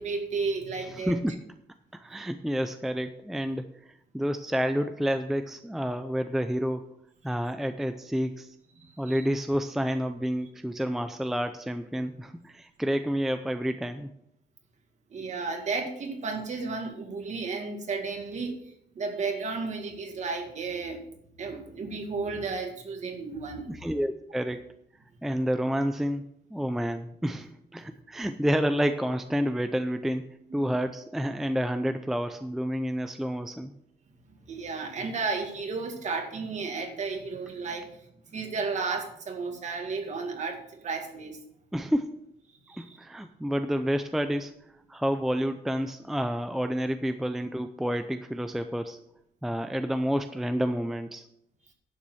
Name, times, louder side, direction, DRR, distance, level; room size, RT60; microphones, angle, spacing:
voice 1, 0.0-1.1 8.8-9.3 15.1-21.1 21.4-23.8 30.5-30.6 34.5-38.0 38.3-41.4 42.7-43.0, right 4 dB, 45° right, 4 dB, 2.1 m, -33 dB
voice 2, 1.9-6.9 7.2-8.6 9.0-14.1 21.9-22.0 23.7-24.6 25.2-26.2 26.5-30.2 30.5-33.7 41.7-42.1 42.8-44.5 44.9-49.0 49.4-51.3, equal, ahead, 8 dB, 0.5 m, -29 dB
11.5 x 7.2 x 6.3 m, 0.74 s
cardioid pair, 155°, 17 cm